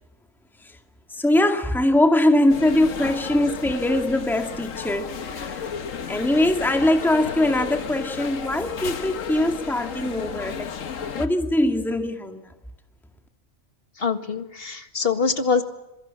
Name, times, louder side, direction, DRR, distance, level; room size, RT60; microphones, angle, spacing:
voice 1, 1.1-5.7 6.1-10.7 11.1-12.5, left 1 dB, ahead, 2.1 m, -22 dB
sound 1, 2.5-11.3, left 7 dB, 80° left, 1.6 m, -33 dB
voice 2, 14.0-15.6, left 5 dB, 45° left, 2.0 m, -24 dB
26.0 x 23.5 x 7.5 m
omnidirectional pair, 1.3 m